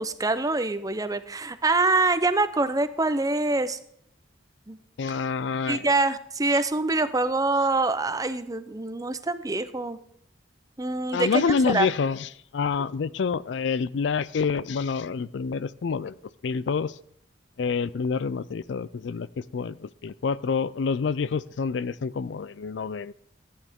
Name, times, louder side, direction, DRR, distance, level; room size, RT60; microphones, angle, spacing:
voice 1, 0.0-3.8 4.7-4.8 5.7-10.0 10.8-11.9, right 3 dB, 20° right, 12 dB, 0.7 m, -25 dB
voice 2, 5.0-5.9 11.1-16.1 16.4-17.0 17.6-23.1, left 5 dB, 70° left, 18 dB, 0.4 m, -27 dB
14.5 x 9.8 x 3.6 m, 0.68 s
head